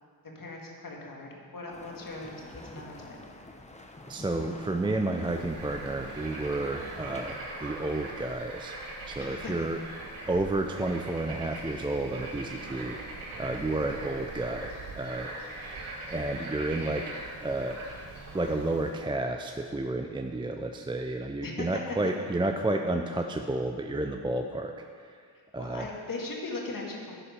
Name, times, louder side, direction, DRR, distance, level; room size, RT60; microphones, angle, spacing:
voice 1, 0.4-3.2 9.2-9.5 21.4-21.8 25.6-27.2, left 2 dB, 45° left, -1 dB, 1.9 m, -39 dB
sound 1, 1.7-7.4, left 2 dB, 15° left, 0.8 m, -46 dB
voice 2, 4.1-8.8 9.1-9.8 10.3-13.0 13.4-17.1 17.4-17.8 18.3-25.2 25.5-25.9, right 2 dB, 10° right, 4 dB, 0.4 m, -31 dB
Bird / Frog, 5.2-19.0, right 2 dB, 85° right, 1.6 m, -41 dB
11.5 x 4.3 x 5.3 m, 2.1 s
cardioid pair, 60°, 48 cm